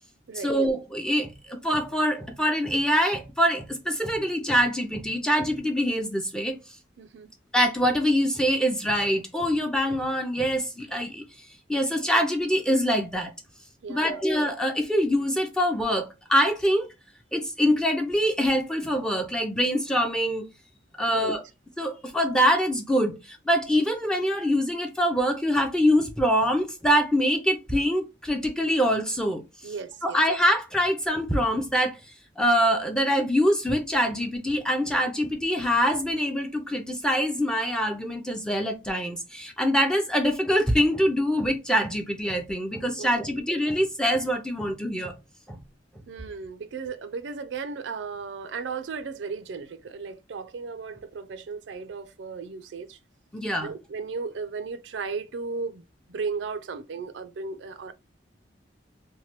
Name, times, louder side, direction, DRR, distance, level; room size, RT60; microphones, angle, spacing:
voice 1, 0.3-6.6 7.5-11.2 11.7-13.3 13.9-16.9 17.3-20.4 21.0-21.4 21.8-29.4 30.0-32.0 32.4-45.1 45.5-45.6 53.3-53.7, equal, 5° left, 0.5 m, -24 dB
voice 2, 7.0-7.3 13.8-14.3 21.1-21.4 29.6-30.2 43.0-43.4 46.1-53.0 53.6-55.8 56.1-57.9, right 5 dB, 75° right, 0.4 m, -35 dB
3.1 x 2.2 x 2.9 m
head